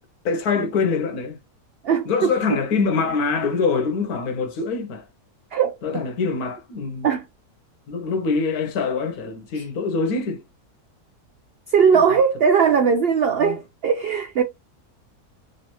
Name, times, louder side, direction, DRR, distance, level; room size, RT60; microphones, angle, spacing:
voice 1, 0.2-1.4 2.1-5.1 5.8-7.1 7.9-10.4 13.4-13.6, left 4 dB, 75° left, 1.3 m, -24 dB
voice 2, 1.8-2.6 5.5-6.0 7.0-7.2 9.5-9.7 11.7-14.4, right 6 dB, 75° right, 0.5 m, -20 dB
3.3 x 3.2 x 2.9 m
omnidirectional pair, 1.6 m